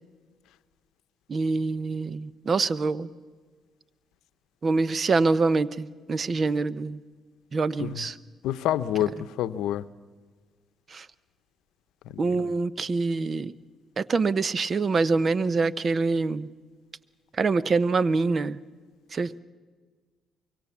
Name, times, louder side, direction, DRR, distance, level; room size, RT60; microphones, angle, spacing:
voice 1, 1.3-3.1 4.6-7.0 7.5-8.2 10.9-11.1 12.2-13.5 14.0-16.5 17.4-18.6 19.1-19.3, right 4 dB, 40° right, 18 dB, 0.8 m, -25 dB
voice 2, 8.4-9.8 12.1-12.5, left 12 dB, 90° left, 13 dB, 0.7 m, -28 dB
24.5 x 22.5 x 7.2 m, 1.5 s
cardioid pair, 90°, 0 cm